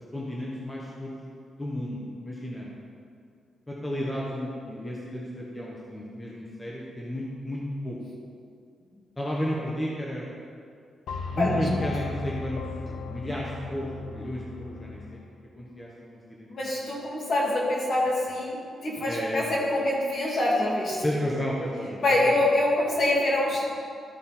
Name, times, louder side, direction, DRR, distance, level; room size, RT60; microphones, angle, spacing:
voice 1, 0.1-1.2 1.6-2.7 3.7-8.0 9.2-10.3 11.4-12.6 12.9-15.0 15.6-16.8 19.0-19.4 21.0-22.4, equal, 15° left, -5 dB, 1.1 m, -33 dB
sound 1, 11.1-15.3, left 4 dB, 80° left, 0.6 m, -36 dB
voice 2, 11.4-11.7 16.5-21.0 22.0-23.6, left 1 dB, 50° left, -4 dB, 2.3 m, -25 dB
13.0 x 5.3 x 4.3 m, 2.3 s
cardioid pair, 130°, 0 cm